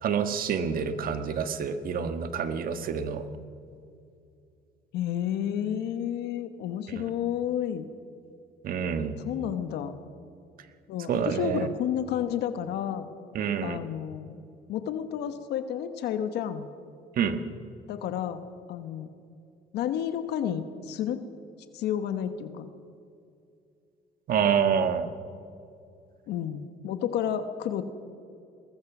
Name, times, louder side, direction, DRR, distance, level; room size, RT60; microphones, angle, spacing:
voice 1, 0.0-3.2 6.9-7.0 8.6-9.2 11.1-11.7 13.3-13.8 17.2-17.4 24.3-25.1, right 7 dB, 55° right, 9 dB, 1.6 m, -27 dB
voice 2, 4.9-7.8 9.2-10.0 10.9-13.1 13.6-14.4 14.7-16.7 17.9-19.1 19.7-21.2 21.7-22.7 26.3-27.8, left 9 dB, 80° left, 9 dB, 1.2 m, -31 dB
22.0 x 19.5 x 6.1 m, 2.5 s
cardioid pair, 110°, 17 cm